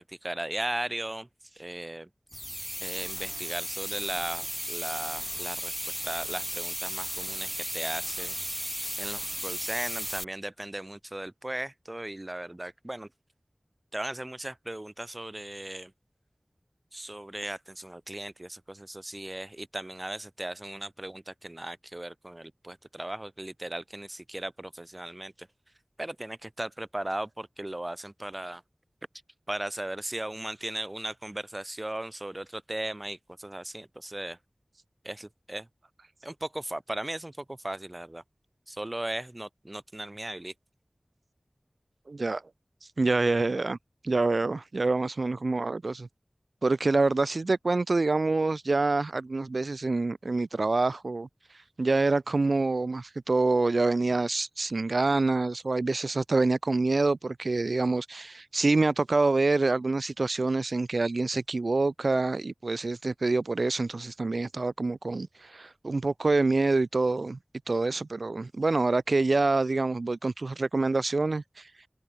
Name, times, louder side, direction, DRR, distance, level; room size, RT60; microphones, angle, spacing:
voice 1, 0.0-2.1 2.8-5.7 6.0-8.4 9.0-13.1 13.9-15.9 16.9-25.5 26.0-28.6 29.5-34.4 35.0-35.7 36.2-38.2 38.7-40.5, right 1 dB, 35° right, 2.1 m, -37 dB
sound 1, 2.3-10.2, equal, ahead, 2.6 m, -35 dB
voice 2, 42.1-42.4 43.0-43.8 44.0-46.1 46.6-51.3 51.8-67.4 67.7-71.7, right 3 dB, 85° right, 1.0 m, -26 dB
wide cardioid pair, 40°, 0 cm